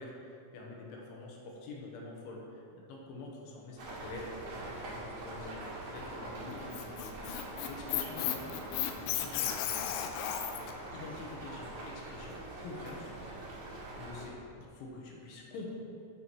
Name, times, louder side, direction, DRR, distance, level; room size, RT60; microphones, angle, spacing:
voice 1, 0.0-4.3 4.5-7.3 7.7-8.6 8.9-9.8 10.9-13.2 13.9-14.3 14.8-15.7, left 2 dB, 70° left, -1 dB, 3.2 m, -46 dB
sound 1, 3.8-14.3, right 2 dB, 65° right, 1.8 m, -44 dB
Squeak, 6.5-10.7, left 11 dB, 90° left, 2.7 m, -34 dB
10.5 x 6.9 x 4.6 m, 2.6 s
omnidirectional pair, 6.0 m